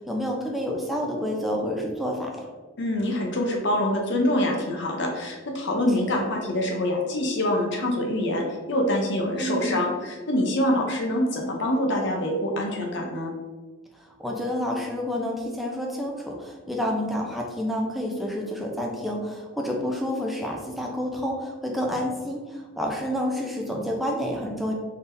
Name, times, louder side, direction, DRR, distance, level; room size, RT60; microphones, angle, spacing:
voice 1, 0.0-2.5 6.1-6.2 9.4-9.8 14.2-24.7, equal, ahead, -1 dB, 0.5 m, -29 dB
voice 2, 2.8-13.3, left 1 dB, 60° left, 1 dB, 0.6 m, -25 dB
3.9 x 3.5 x 2.6 m, 1.3 s
head